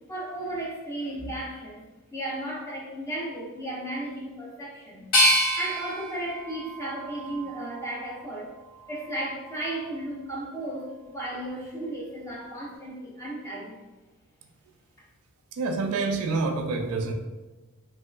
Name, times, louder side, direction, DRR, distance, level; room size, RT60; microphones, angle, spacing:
voice 1, 0.1-1.8 2.1-5.1 5.5-8.5 8.9-13.8, right 1 dB, 15° left, -5 dB, 0.7 m, -34 dB
sound 1, 5.1-8.1 8.6-9.4, equal, 90° left, 0.8 m, -27 dB
voice 2, 15.5-17.1, right 3 dB, 85° right, 5 dB, 0.4 m, -27 dB
3.0 x 2.8 x 2.3 m, 1.2 s
head